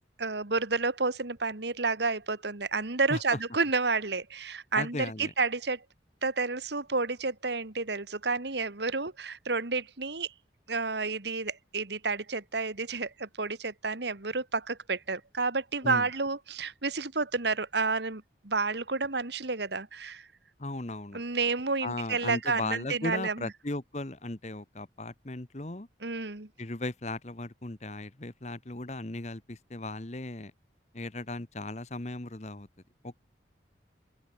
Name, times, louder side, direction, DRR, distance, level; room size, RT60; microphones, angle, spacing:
voice 1, 0.2-5.8 6.2-10.3 10.7-20.3 21.1-23.5 26.0-26.5, right 4 dB, 65° right, 1.8 m, -30 dB
voice 2, 4.7-5.3 15.8-16.1 20.6-21.2 21.8-25.9 26.6-30.5 30.9-32.7 33.0-33.2, left 2 dB, 35° left, 1.3 m, -36 dB
open air
head